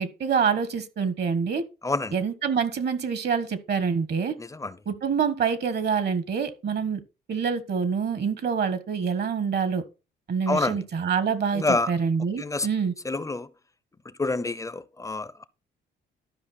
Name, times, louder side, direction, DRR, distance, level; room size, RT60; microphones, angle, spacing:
voice 1, 0.0-1.6 2.1-4.3 4.9-7.0 7.3-9.8 10.3-12.9, right 6 dB, 55° right, 1.4 m, -26 dB
voice 2, 1.8-2.2 4.4-4.8 10.5-10.8 11.5-11.9 12.4-12.7 13.0-13.5 14.0-15.5, left 3 dB, 15° left, 0.7 m, -27 dB
12.5 x 5.2 x 4.2 m
cardioid pair, 90°, 20 cm